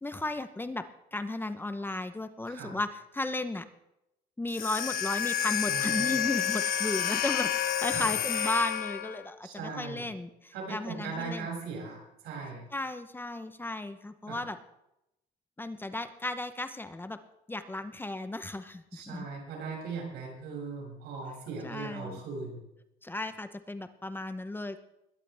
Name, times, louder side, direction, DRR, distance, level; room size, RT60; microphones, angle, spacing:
voice 1, 0.0-0.8 1.1-3.6 4.4-11.5 12.7-14.6 15.6-17.2 17.5-19.3 21.6-22.2 23.0-24.8, left 2 dB, 10° left, 10 dB, 0.9 m, -35 dB
voice 2, 2.5-2.8 5.7-6.2 7.9-8.1 9.4-10.1 10.5-12.6 14.3-14.4 18.9-22.6, right 4 dB, 80° right, -1 dB, 6.9 m, -39 dB
sound 1, 4.5-9.3, left 9 dB, 60° left, 1.0 m, -30 dB
21.0 x 11.5 x 3.5 m, 0.85 s
cardioid pair, 110°, 17 cm